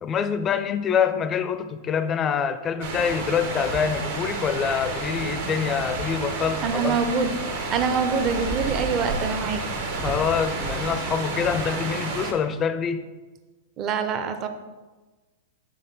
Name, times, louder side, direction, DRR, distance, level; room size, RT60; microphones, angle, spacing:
voice 1, 0.0-7.0 10.0-13.1, left 7 dB, 25° left, 11 dB, 0.4 m, -25 dB
sound 1, 2.8-12.3, right 3 dB, 65° right, 1.2 m, -30 dB
voice 2, 6.6-7.3 7.7-9.6 13.8-14.5, right 5 dB, 35° right, 8 dB, 0.6 m, -25 dB
5.5 x 3.7 x 5.4 m, 1.2 s
hypercardioid pair, 110°, 0 cm